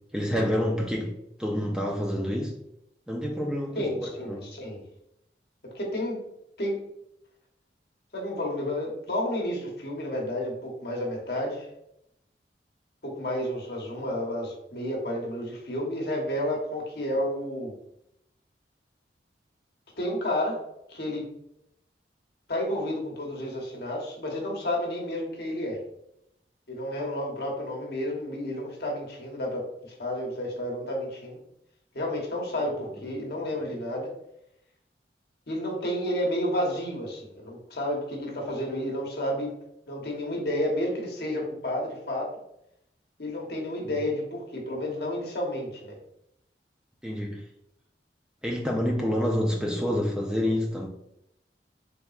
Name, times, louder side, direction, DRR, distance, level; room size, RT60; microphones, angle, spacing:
voice 1, 0.1-1.1 1.4-2.5 3.1-4.4 47.0-47.4 48.4-50.9, equal, 5° right, 0 dB, 0.4 m, -28 dB
voice 2, 3.7-4.8 5.7-6.2 6.6-6.8 8.1-11.7 13.0-17.7 20.0-20.6 20.9-21.2 22.5-25.8 26.7-29.7 30.0-31.4 31.9-34.1 35.5-39.5 39.9-42.3 43.2-46.0, left 1 dB, 60° left, -1 dB, 1.0 m, -31 dB
4.0 x 3.5 x 2.4 m, 0.79 s
head